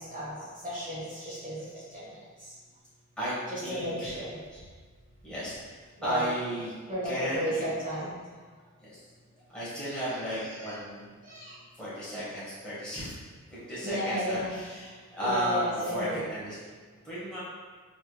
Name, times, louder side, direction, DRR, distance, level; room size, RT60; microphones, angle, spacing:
voice 1, 0.0-1.6 1.9-2.1 2.4-2.5 3.5-4.4 6.0-6.5 6.9-8.1 10.1-10.8 11.2-11.6 12.0-12.4 13.8-14.6 15.2-16.3, equal, 25° right, -11 dB, 1.3 m, -34 dB
voice 2, 3.6-4.2 4.5-4.6 5.2-6.7 7.0-7.6 8.8-9.0 9.5-11.1 11.8-13.1 13.5-16.6 17.0-17.4, equal, 5° left, -11 dB, 1.2 m, -34 dB
3.4 x 3.1 x 2.3 m, 1.5 s
wide cardioid pair, 105°, 30 cm